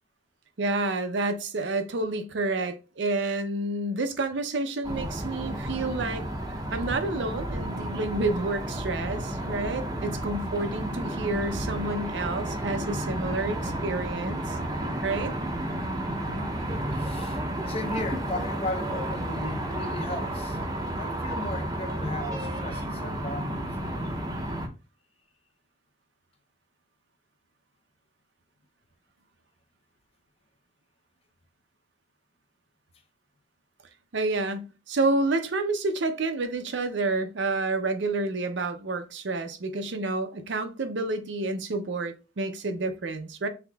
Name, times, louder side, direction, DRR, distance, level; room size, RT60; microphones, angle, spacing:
voice 1, 0.6-6.3 6.7-14.6 15.0-15.3 34.1-43.5, right 2 dB, 80° right, 0.6 m, -29 dB
sound 1, 4.8-24.7, right 1 dB, 20° right, 0.6 m, -32 dB
voice 2, 16.2-16.5 16.9-20.6 21.0-24.0, left 2 dB, 30° left, 0.5 m, -36 dB
5.8 x 3.5 x 2.3 m
head